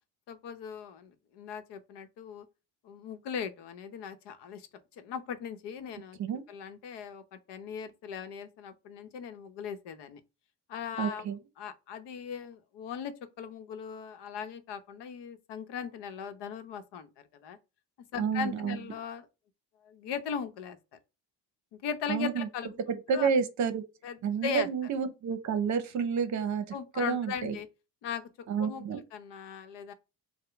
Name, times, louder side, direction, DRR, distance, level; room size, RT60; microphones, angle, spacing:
voice 1, 0.3-2.5 2.8-4.7 5.0-6.2 6.5-10.2 10.7-11.2 11.6-17.1 17.4-17.6 18.1-19.3 19.8-20.8 21.7-22.8 23.1-23.3 24.0-24.7 26.7-27.7 28.0-29.9, left 7 dB, 75° left, 0.9 m, -39 dB
voice 2, 11.0-11.4 18.2-18.8 22.1-22.5 22.9-23.8 24.2-26.6 27.0-27.6 28.5-29.0, right 6 dB, 45° right, 0.8 m, -30 dB
4.9 x 2.2 x 4.5 m
cardioid pair, 155°, 42 cm